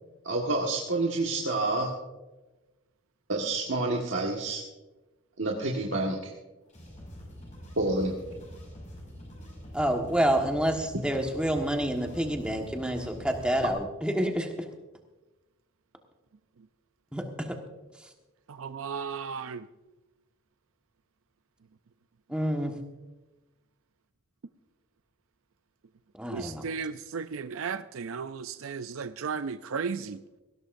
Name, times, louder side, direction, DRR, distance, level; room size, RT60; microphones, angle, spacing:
voice 1, 0.2-1.9 3.3-4.6 5.4-6.3 7.8-8.1, right 2 dB, 65° right, -2 dB, 1.7 m, -28 dB
sound 1, 6.7-13.7, equal, 35° left, 5.8 m, -45 dB
voice 2, 9.7-14.5 17.1-17.2 22.3-22.7 26.1-26.6, right 1 dB, 5° right, 2 dB, 1.5 m, -28 dB
voice 3, 18.5-19.7 26.3-30.2, right 5 dB, 85° right, 11 dB, 0.5 m, -35 dB
19.5 x 16.5 x 2.6 m, 1.1 s
head